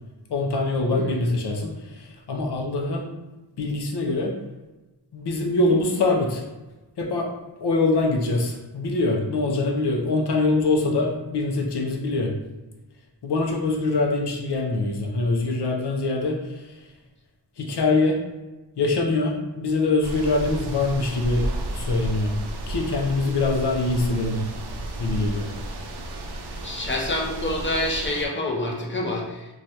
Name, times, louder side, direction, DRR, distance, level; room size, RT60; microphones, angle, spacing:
voice 1, 0.3-3.1 3.6-4.3 5.1-6.4 7.0-7.3 7.6-12.3 13.2-16.9 17.6-18.2 18.8-21.4 21.7-22.4 22.7-24.4 25.0-25.5, left 2 dB, 70° left, 1 dB, 0.6 m, -24 dB
sound 1, 20.0-28.3, right 1 dB, 65° right, 0.5 m, -33 dB
voice 2, 26.6-29.5, left 1 dB, 25° left, -1 dB, 0.6 m, -27 dB
3.1 x 2.3 x 2.7 m, 1.1 s
wide cardioid pair, 90°, 42 cm